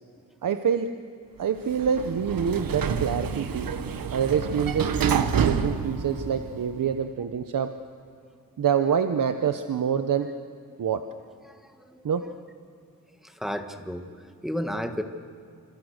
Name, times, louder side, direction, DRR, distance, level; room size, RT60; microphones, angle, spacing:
voice 1, 0.4-0.9 1.4-3.7 4.1-7.7 8.6-10.3 10.8-11.0 12.0-12.3, right 7 dB, 70° right, 8 dB, 1.0 m, -26 dB
Sliding door, 1.6-6.8, right 6 dB, 90° right, 1.4 m, -28 dB
voice 2, 11.4-12.1 13.2-15.0, equal, ahead, 6 dB, 1.5 m, -33 dB
27.5 x 27.0 x 6.6 m, 2.4 s
wide cardioid pair, 145°, 34 cm